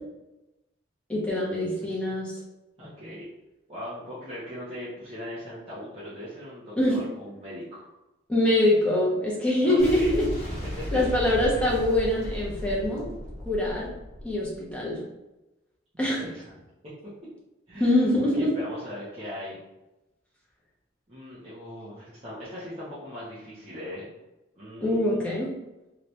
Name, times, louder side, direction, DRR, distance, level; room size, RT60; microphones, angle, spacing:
voice 1, 1.1-2.3 6.8-7.0 8.3-10.3 10.9-13.0 13.4-13.9 14.2-15.0 16.0-16.3 17.7-18.5 24.8-25.5, left 1 dB, 5° left, -6 dB, 0.9 m, -24 dB
voice 2, 1.7-2.2 2.8-3.2 3.7-7.8 9.6-10.1 10.9-11.0 11.5-11.7 16.0-16.4 17.7-19.6 21.1-24.1 24.5-25.2, left 1 dB, 30° right, -11 dB, 0.8 m, -39 dB
Boom, 9.8-14.7, equal, 35° left, 1.1 m, -35 dB
3.2 x 2.9 x 3.1 m, 0.99 s
head